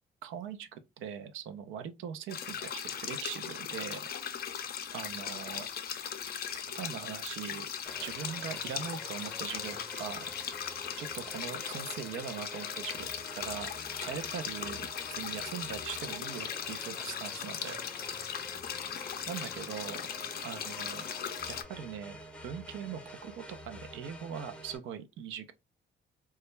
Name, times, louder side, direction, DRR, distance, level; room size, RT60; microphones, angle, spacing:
voice 1, 0.2-4.0 4.9-5.7 6.7-7.7 8.0-10.3 11.0-13.1 13.4-14.9 15.2-17.8 19.3-20.0 20.4-21.0 21.5-22.2 22.4-25.5, right 8 dB, 80° right, 0.4 m, -41 dB
sound 1, 2.3-21.6, left 8 dB, 50° left, 0.4 m, -38 dB
sound 2, 7.9-24.8, equal, 5° left, 0.6 m, -48 dB
2.2 x 2.1 x 3.0 m
cardioid pair, 90°, 20 cm